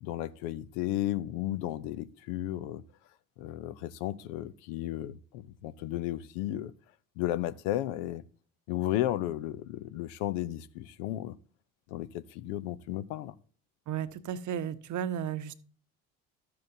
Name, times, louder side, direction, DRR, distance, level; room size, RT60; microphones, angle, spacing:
voice 1, 0.0-2.8 3.4-6.7 7.2-8.2 8.7-11.3 11.9-13.3, left 13 dB, 65° left, 0.7 m, -34 dB
voice 2, 13.9-15.6, right 9 dB, 45° right, 0.9 m, -34 dB
13.0 x 7.6 x 2.7 m
hypercardioid pair, 55°, 40 cm